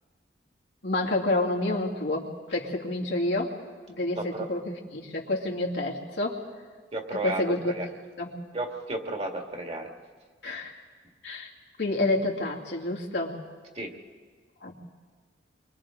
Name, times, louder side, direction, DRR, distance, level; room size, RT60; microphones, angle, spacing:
voice 1, 0.8-3.5 3.9-6.4 7.1-7.7 8.2-8.4 10.4-10.7 11.2-11.5 11.8-13.4 14.6-14.7, left 2 dB, 85° left, -2 dB, 2.5 m, -29 dB
voice 2, 4.2-4.5 6.9-7.9 8.5-9.9 13.8-13.9, right 2 dB, 35° right, 3 dB, 1.9 m, -33 dB
30.0 x 24.0 x 3.8 m, 1.5 s
head